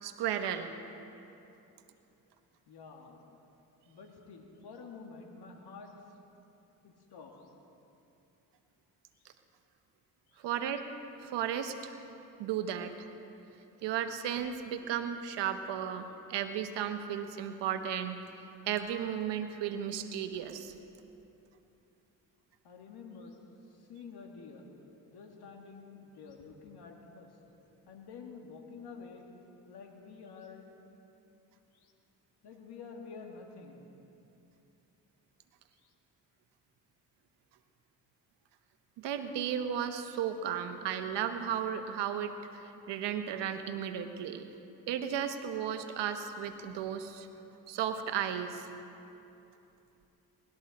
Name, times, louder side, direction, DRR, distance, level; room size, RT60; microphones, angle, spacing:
voice 1, 0.0-0.7 10.4-10.8 11.2-12.0 12.4-12.9 13.8-18.2 18.7-20.7 39.0-42.3 42.9-44.5 44.9-47.3 47.7-48.7, right 9 dB, 80° right, 8 dB, 1.1 m, -34 dB
voice 2, 2.7-3.4 3.9-6.2 6.8-7.5 9.1-9.4 10.3-10.5 22.6-23.4 23.7-24.7 25.1-27.4 27.9-29.3 29.6-30.7 31.7-31.9 32.4-33.9 35.8-35.9, left 5 dB, 70° left, 2 dB, 2.1 m, -49 dB
20.0 x 13.0 x 4.2 m, 2.9 s
supercardioid pair, 55°, 41 cm